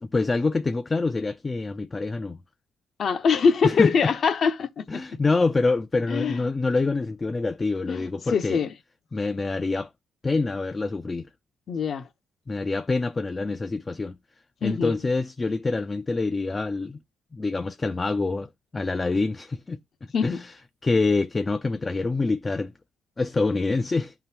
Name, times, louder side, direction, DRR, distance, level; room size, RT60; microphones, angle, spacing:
voice 1, 0.0-2.4 3.6-4.1 4.9-8.6 9.1-9.9 10.2-11.3 12.5-14.2 14.6-17.0 17.3-19.8 20.2-20.5 20.8-22.7 23.2-24.1, left 3 dB, 25° left, 0.4 m, -26 dB
voice 2, 3.0-4.8 6.1-6.4 7.9-8.7 11.7-12.0 14.6-14.9 20.1-20.4, left 6 dB, 55° left, 0.9 m, -23 dB
11.5 x 3.8 x 2.8 m
cardioid pair, 90°, 0 cm